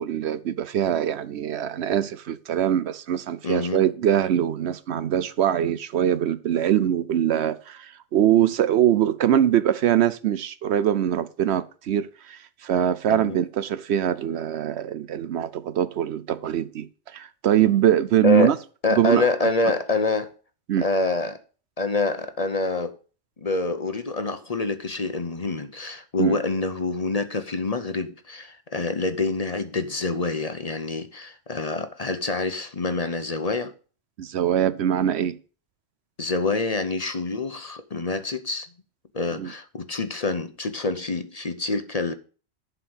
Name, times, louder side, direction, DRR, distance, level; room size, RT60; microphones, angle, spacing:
voice 1, 0.0-18.6 18.9-19.3 20.7-20.9 26.2-26.4 34.2-35.4 39.4-39.5, right 10 dB, 70° right, 0.9 m, -23 dB
voice 2, 3.4-3.8 13.1-13.4 18.2-18.5 18.8-20.3 20.8-21.4 21.8-23.0 23.4-33.7 36.2-38.7 39.1-42.1, left 3 dB, 35° left, 0.8 m, -26 dB
11.5 x 4.8 x 8.0 m
omnidirectional pair, 1.2 m